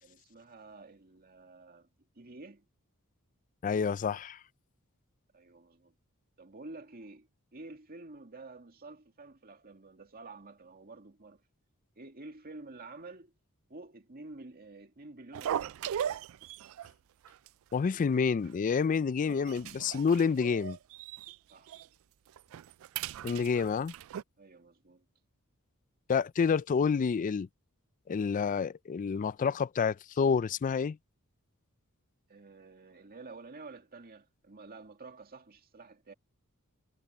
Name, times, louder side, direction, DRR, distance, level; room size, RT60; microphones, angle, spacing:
voice 1, 0.0-1.9 2.2-2.7 5.3-5.9 6.4-11.4 12.0-13.3 13.7-15.8 21.5-21.8 24.4-25.1 32.3-36.1, right 3 dB, 45° right, 2.3 m, -50 dB
voice 2, 3.6-4.4 17.7-20.8 23.2-23.9 26.1-27.5 28.1-31.0, left 5 dB, 35° left, 0.3 m, -28 dB
sound 1, 15.3-16.9 17.2-17.5 17.7-17.8 18.4-18.9 19.3-21.4 21.7-21.9 22.3-24.2, right 9 dB, 65° right, 0.3 m, -38 dB
head